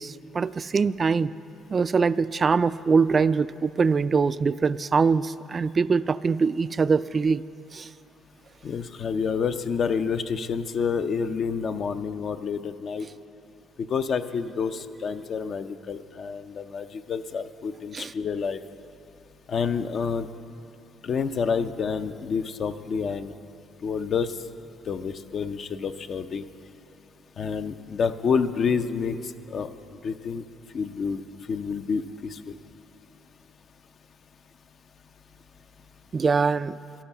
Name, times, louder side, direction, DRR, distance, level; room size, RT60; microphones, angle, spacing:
voice 1, 0.0-1.3 1.7-7.4 7.7-7.9 17.9-18.1 36.1-36.8, right 5 dB, 35° right, 16 dB, 0.3 m, -23 dB
voice 2, 8.6-13.1 13.8-18.6 19.5-20.3 21.0-23.3 23.8-24.4 24.9-26.5 27.4-29.2 29.5-29.7 30.0-30.4 30.7-31.2 31.5-32.6, left 6 dB, 55° left, 8 dB, 0.6 m, -28 dB
13.0 x 11.5 x 7.1 m, 2.7 s
supercardioid pair, 80°, 0 cm